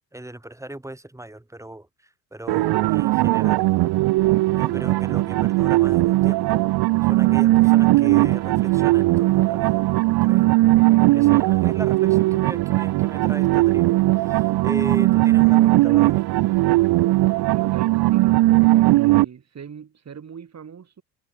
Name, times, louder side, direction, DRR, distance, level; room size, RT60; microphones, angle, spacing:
voice 1, 0.1-1.9 2.3-3.7 4.2-6.7 7.1-10.5 11.1-16.2, right 1 dB, 5° right, 5.6 m, -37 dB
sound 1, 2.5-19.2, right 19 dB, 50° right, 1.5 m, -18 dB
voice 2, 17.5-18.4 19.1-21.0, right 7 dB, 30° right, 5.3 m, -41 dB
figure-of-eight pair, 60°, 49 cm